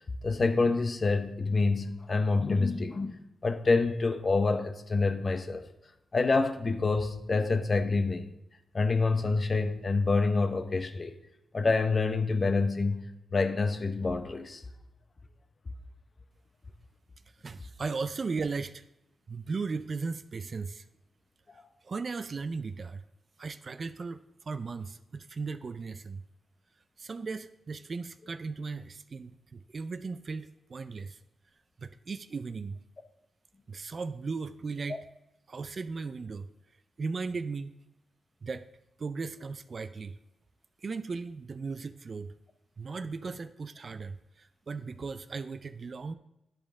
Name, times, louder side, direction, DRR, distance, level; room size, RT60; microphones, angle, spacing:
voice 1, 0.2-5.6 6.1-8.3 8.7-11.1 11.5-13.0 13.3-14.6 34.9-35.0, left 3 dB, 40° left, 0.7 m, -27 dB
voice 2, 17.4-18.8 19.3-20.8 21.8-23.0 23.4-26.2 27.0-31.2 31.8-32.8 33.7-35.1 35.5-36.5 37.0-37.7 38.4-38.6 39.0-40.2 40.8-42.3 42.8-46.1, right 4 dB, 45° right, 0.4 m, -37 dB
10.5 x 5.2 x 3.7 m
cardioid pair, 90°, 0 cm